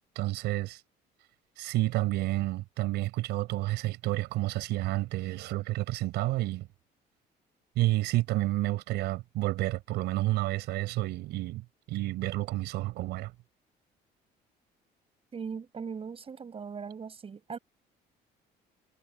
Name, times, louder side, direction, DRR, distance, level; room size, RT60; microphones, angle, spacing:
voice 1, 0.2-0.8 1.6-6.7 7.8-13.3, right 17 dB, 85° right, 5.2 m, -30 dB
voice 2, 15.3-17.6, right 6 dB, 35° right, 5.6 m, -39 dB
cardioid pair, 110°, 17 cm